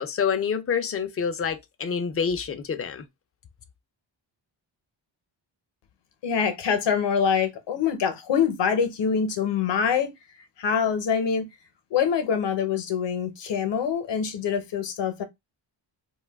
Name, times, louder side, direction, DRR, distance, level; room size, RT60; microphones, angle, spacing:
voice 1, 0.0-3.1, left 6 dB, 30° left, 0.4 m, -27 dB
voice 2, 6.2-10.1 10.6-11.5 11.9-15.2, left 7 dB, 65° left, 0.8 m, -25 dB
2.5 x 2.3 x 3.3 m
wide cardioid pair, 150°, 47 cm